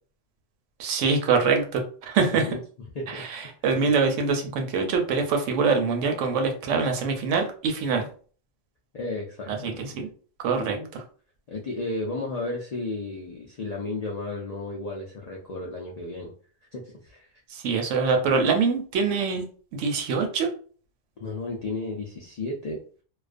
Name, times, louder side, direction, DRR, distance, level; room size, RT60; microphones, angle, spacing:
voice 1, 0.8-2.5 3.1-8.1 9.6-10.1 10.4-11.0 17.5-19.4 19.7-20.5, right 5 dB, 80° right, 4 dB, 0.9 m, -24 dB
voice 2, 2.3-2.6 2.9-3.2 3.7-3.9 8.9-9.9 10.5-10.9 11.5-16.3 16.7-17.3 21.2-22.8, left 2 dB, 80° left, -2 dB, 0.3 m, -33 dB
2.4 x 2.2 x 2.4 m, 0.43 s
omnidirectional pair, 1.2 m